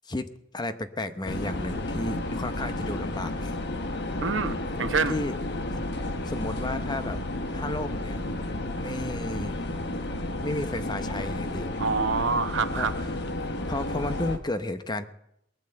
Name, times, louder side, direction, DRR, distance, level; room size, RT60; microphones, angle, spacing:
voice 1, 0.0-3.8 5.1-5.3 6.2-7.2 7.5-8.2 8.8-9.7 10.4-11.7 12.8-12.9 13.7-15.1, left 2 dB, 20° left, 10 dB, 0.8 m, -33 dB
sound 1, 1.2-14.4, left 1 dB, 60° left, 1.4 m, -32 dB
voice 2, 4.2-5.1 11.8-12.9, right 4 dB, 75° right, 10 dB, 1.0 m, -26 dB
19.5 x 8.9 x 7.8 m, 0.78 s
head